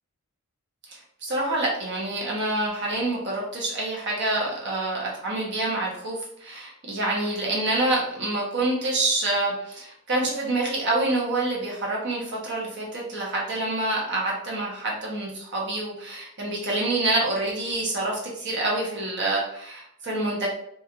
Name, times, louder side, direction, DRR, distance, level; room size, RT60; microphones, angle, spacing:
voice 1, 0.9-20.5, right 2 dB, 55° right, -3 dB, 0.9 m, -27 dB
3.0 x 2.4 x 2.4 m, 0.72 s
head